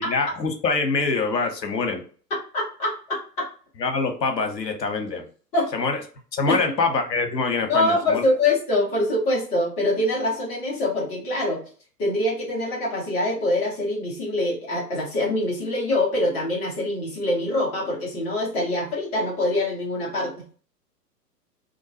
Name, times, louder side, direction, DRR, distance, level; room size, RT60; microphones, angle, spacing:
voice 1, 0.0-2.0 3.8-5.3 5.7-6.0 6.3-8.2, left 4 dB, 80° left, 5 dB, 0.8 m, -24 dB
voice 2, 2.3-3.5 5.5-5.7 6.5-6.6 7.7-11.6 12.0-20.3, left 1 dB, 15° left, -4 dB, 0.7 m, -24 dB
2.5 x 2.2 x 2.6 m, 0.41 s
figure-of-eight pair, 110°, 49 cm